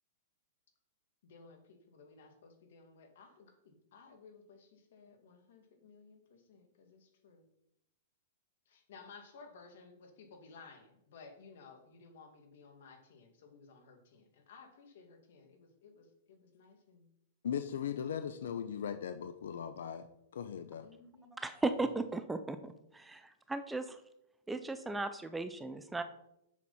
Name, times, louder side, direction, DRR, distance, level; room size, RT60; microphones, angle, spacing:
voice 1, 1.2-7.5 8.7-17.1 20.8-21.3, left 4 dB, 60° left, 5 dB, 2.0 m, -57 dB
voice 2, 17.4-20.1 20.3-20.9, left 8 dB, 80° left, 10 dB, 0.6 m, -38 dB
voice 3, 21.4-22.6 23.5-24.0 24.5-26.0, right 3 dB, 5° right, 10 dB, 0.4 m, -35 dB
7.4 x 6.2 x 5.5 m, 0.83 s
supercardioid pair, 165°, 0 cm